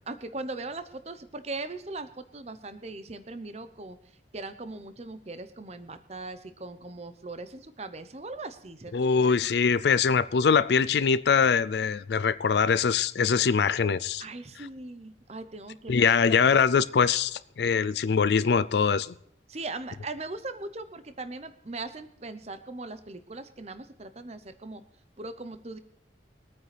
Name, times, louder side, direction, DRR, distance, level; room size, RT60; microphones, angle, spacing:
voice 1, 0.1-4.0 4.3-9.3 14.2-16.4 19.5-24.8 25.2-25.8, right 2 dB, 35° right, 0.8 m, -39 dB
voice 2, 8.9-14.2 14.6-14.7 15.9-19.1, left 6 dB, 65° left, 0.4 m, -23 dB
23.0 x 9.3 x 3.4 m
head